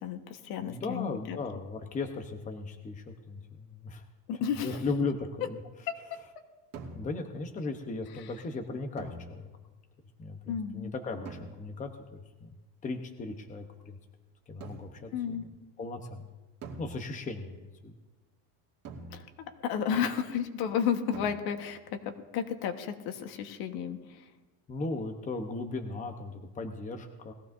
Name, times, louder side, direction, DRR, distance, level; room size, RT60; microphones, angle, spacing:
voice 1, 0.0-1.4 4.3-4.8 10.5-10.9 15.1-15.4 19.1-24.2, left 8 dB, 50° left, 6 dB, 1.5 m, -32 dB
voice 2, 0.6-4.0 4.6-5.6 6.9-9.5 10.2-12.5 12.8-14.0 14.5-15.4 15.8-16.3 16.8-17.9 24.7-27.3, left 3 dB, 15° left, 4 dB, 1.0 m, -37 dB
sound 1, 4.7-5.3 6.7-7.6 9.0-9.7 11.3-12.0 14.6-15.2 16.6-17.5 18.8-19.6 21.1-21.8, right 4 dB, 35° right, 2.2 m, -46 dB
20.5 x 15.0 x 2.7 m, 1.2 s
supercardioid pair, 145°, 47 cm